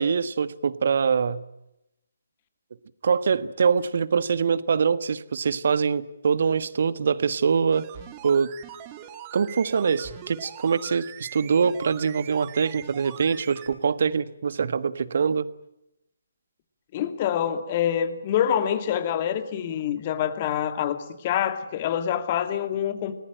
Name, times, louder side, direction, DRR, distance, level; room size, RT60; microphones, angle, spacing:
voice 1, 0.0-1.4 3.0-7.9 8.2-8.5 9.3-15.5, right 6 dB, 50° right, 15 dB, 1.4 m, -24 dB
sound 1, 7.7-13.8 14.0-14.1, right 11 dB, 20° right, 2.5 m, -42 dB
voice 2, 16.9-23.1, left 9 dB, 30° left, 10 dB, 2.5 m, -26 dB
30.0 x 20.0 x 8.9 m, 0.88 s
figure-of-eight pair, 140°, 0 cm